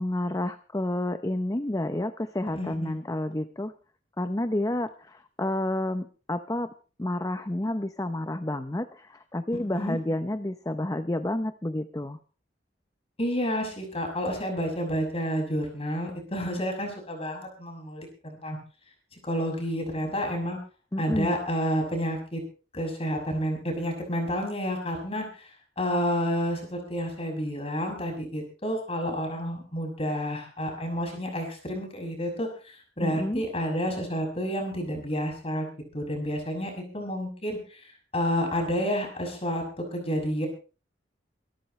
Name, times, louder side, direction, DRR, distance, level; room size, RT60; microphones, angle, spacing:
voice 1, 0.0-3.7 4.2-6.7 7.0-12.2 20.9-21.3 33.0-33.4, left 1 dB, 20° left, 10 dB, 0.7 m, -30 dB
voice 2, 2.5-2.9 9.7-10.0 13.2-18.6 19.2-20.6 21.0-22.4 22.7-25.5 25.8-35.7 35.9-40.5, equal, 35° left, 3 dB, 6.3 m, -30 dB
25.0 x 13.0 x 3.2 m, 0.36 s
head